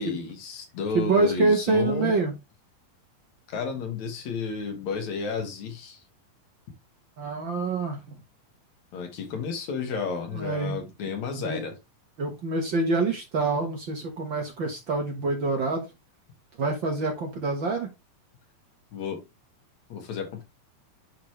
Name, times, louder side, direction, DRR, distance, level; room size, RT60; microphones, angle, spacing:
voice 1, 0.0-2.2 3.5-6.0 8.9-11.7 18.9-19.2 19.9-20.4, left 5 dB, 55° left, 2.8 m, -32 dB
voice 2, 0.9-2.3 7.2-8.2 10.3-10.8 11.4-11.6 12.2-15.9 16.6-17.9, right 3 dB, 65° right, 1.2 m, -26 dB
11.0 x 4.0 x 3.2 m
omnidirectional pair, 4.1 m